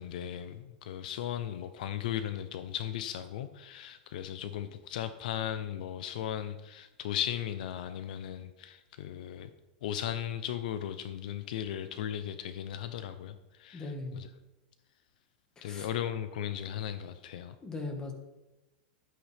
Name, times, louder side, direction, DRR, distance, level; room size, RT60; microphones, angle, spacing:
voice 1, 0.0-9.5 9.8-14.3 15.6-17.6, left 10 dB, 65° left, 11 dB, 0.7 m, -37 dB
voice 2, 13.7-14.2 15.6-15.9 17.6-18.1, left 2 dB, 15° left, 3 dB, 1.7 m, -39 dB
11.5 x 9.7 x 3.5 m, 1.1 s
supercardioid pair, 150°, 5 cm